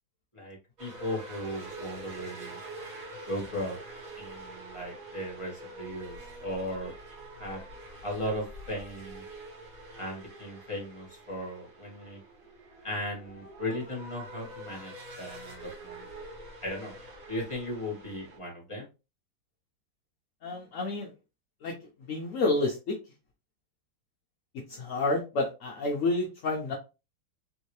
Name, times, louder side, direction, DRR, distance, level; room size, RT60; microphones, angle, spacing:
voice 1, 0.3-2.6 3.2-3.8 4.1-6.9 7.4-7.6 8.0-9.2 10.0-12.2 12.8-16.1 16.6-16.9 17.3-18.9, left 1 dB, 20° left, -2 dB, 1.3 m, -37 dB
sound 1, 0.8-18.4, right 2 dB, 50° right, 1.7 m, -46 dB
voice 2, 20.4-21.1 21.6-21.7 22.1-22.9 24.7-26.7, left 2 dB, 65° left, -1 dB, 0.8 m, -29 dB
3.5 x 2.7 x 3.0 m, 0.29 s
omnidirectional pair, 2.1 m